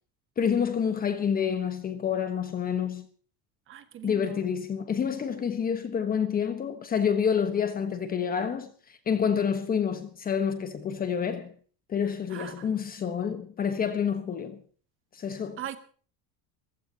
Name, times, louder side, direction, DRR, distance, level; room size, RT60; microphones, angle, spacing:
voice 1, 0.4-3.1 4.0-11.5 11.9-14.6 15.1-15.6, left 7 dB, 20° left, 1.2 m, -28 dB
voice 2, 3.7-4.4 12.3-12.7 15.6-15.8, right 11 dB, 30° right, 1.8 m, -40 dB
28.5 x 15.5 x 2.9 m
cardioid pair, 170°, 41 cm